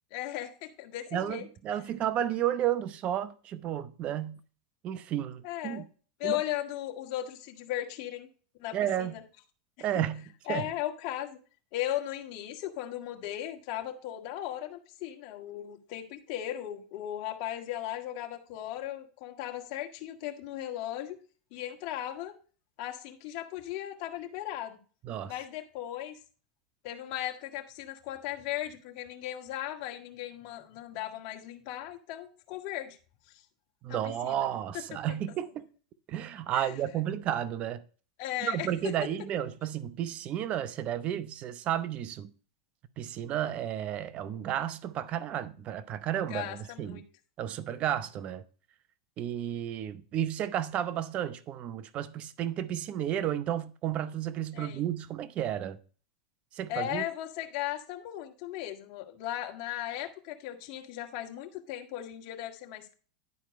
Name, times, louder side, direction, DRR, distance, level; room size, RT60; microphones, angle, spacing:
voice 1, 0.1-1.5 5.1-5.8 6.2-8.3 8.6-9.2 10.5-11.4 11.7-21.1 21.5-22.3 22.8-24.8 25.3-26.2 26.8-33.0 33.9-34.5 34.7-34.8 36.5-36.7 38.2-38.7 46.3-47.0 54.5-54.8 56.7-62.9, left 13 dB, 55° left, 1.7 m, -37 dB
voice 2, 1.1-4.4 4.8-5.9 6.2-6.4 8.7-9.1 9.8-10.7 25.1-25.3 33.8-35.6 36.1-37.8 38.4-42.3 43.0-47.0 47.4-48.4 49.2-55.8 56.5-57.0, right 11 dB, 40° right, 0.8 m, -32 dB
11.0 x 4.5 x 5.2 m
supercardioid pair, 125°, 3 cm